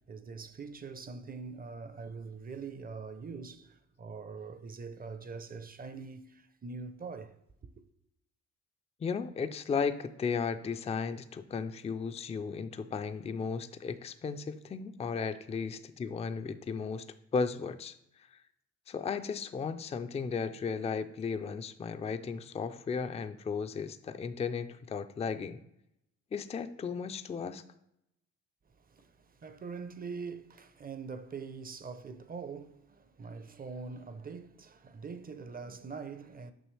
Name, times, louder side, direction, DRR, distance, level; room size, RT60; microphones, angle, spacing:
voice 1, 0.0-7.3 28.8-36.5, right 5 dB, 30° right, 0.6 m, -43 dB
voice 2, 9.0-17.1 17.3-17.9 18.3-18.4 18.9-25.6 26.3-27.6, left 5 dB, 20° left, 0.4 m, -35 dB
6.2 x 6.2 x 3.2 m
cardioid pair, 90°, 30 cm